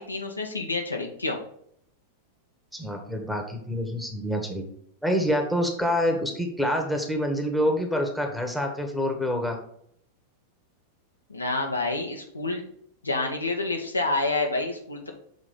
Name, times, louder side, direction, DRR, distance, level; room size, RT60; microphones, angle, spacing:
voice 1, 0.0-1.4 11.3-12.7 13.0-15.1, left 2 dB, 80° left, 2 dB, 1.0 m, -28 dB
voice 2, 2.7-4.6 5.0-9.6, equal, ahead, 2 dB, 1.3 m, -26 dB
6.5 x 3.5 x 5.1 m, 0.68 s
figure-of-eight pair, 90°, 0 cm